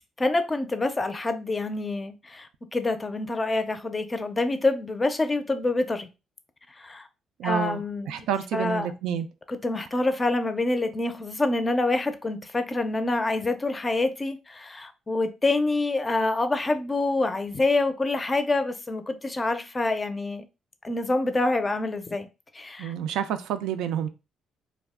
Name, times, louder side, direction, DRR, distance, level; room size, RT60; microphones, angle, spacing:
voice 1, 0.2-6.1 6.8-7.1 7.4-8.3 8.5-8.9 9.5-20.4 20.8-22.3 22.5-22.9, left 2 dB, 25° left, 0.4 m, -26 dB
voice 2, 7.4-7.8 8.1-9.3 22.8-24.1, right 9 dB, 90° right, 0.3 m, -28 dB
2.3 x 2.1 x 3.5 m
cardioid pair, 90°, 0 cm